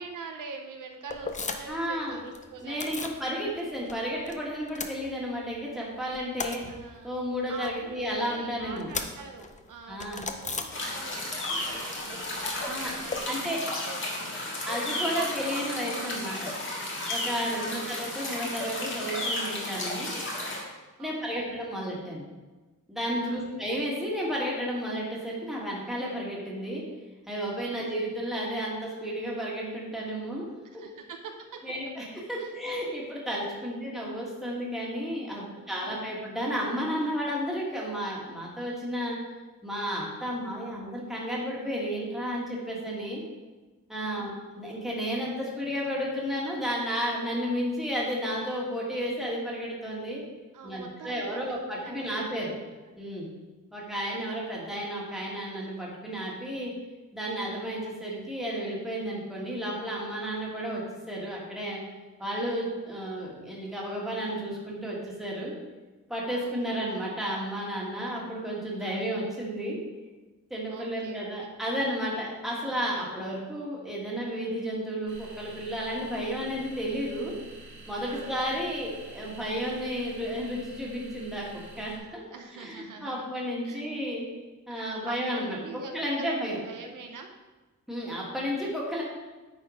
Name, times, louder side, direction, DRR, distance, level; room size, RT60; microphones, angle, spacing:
voice 1, 0.0-3.0 6.7-10.0 10.3-13.6 13.8-14.3 17.2-17.9 21.0-21.5 23.2-23.5 27.7-27.9 30.6-31.6 32.4-32.5 33.6-33.8 35.3-36.0 44.0-44.4 50.5-51.4 51.7-52.6 52.9-53.1 57.6-57.7 62.2-62.5 66.3-66.9 68.8-69.1 70.7-71.5 72.7-72.9 78.1-78.4 82.3-83.3 83.6-83.9 84.7-85.9 86.2-87.3, right 5 dB, 75° right, 4 dB, 0.9 m, -45 dB
sound 1, 1.1-1.9 2.1-3.2 3.6-4.4 4.6-5.6 5.9-11.3 11.6-13.2, left 4 dB, 25° left, 0.5 m, -38 dB
voice 2, 1.7-2.2 2.6-6.6 7.0-8.9 9.9-10.3 12.6-12.9 13.3-13.6 14.7-16.5 17.1-20.1 21.0-22.3 22.9-26.8 27.3-30.5 31.6-39.2 39.6-43.2 43.9-50.2 50.6-52.5 53.0-53.3 53.7-56.7 57.1-61.8 62.2-65.5 66.1-69.8 70.5-77.3 77.9-82.2 82.5-84.3 84.7-85.6 85.9-86.6 87.9-89.0, equal, ahead, -4 dB, 1.8 m, -32 dB
sound 2, 10.7-20.6, left 1 dB, 40° left, 1.7 m, -33 dB
sound 3, 75.1-82.0, right 3 dB, 35° right, 1.4 m, -47 dB
9.3 x 4.2 x 5.0 m, 1.2 s
wide cardioid pair, 175°, 32 cm